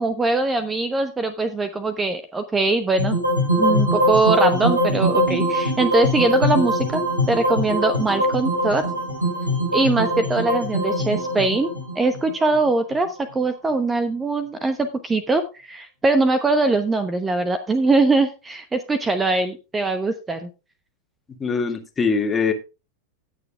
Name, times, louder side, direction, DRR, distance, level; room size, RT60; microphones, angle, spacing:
voice 1, 0.0-3.2 3.6-7.0 7.3-8.8 9.7-20.5, right 3 dB, 15° right, 10 dB, 0.9 m, -22 dB
sound 1, 3.0-13.2, equal, 85° right, 5.5 m, -22 dB
voice 2, 21.4-22.5, left 5 dB, 20° left, 5 dB, 1.8 m, -22 dB
18.0 x 6.9 x 2.3 m, 0.30 s
figure-of-eight pair, 90°, 0 cm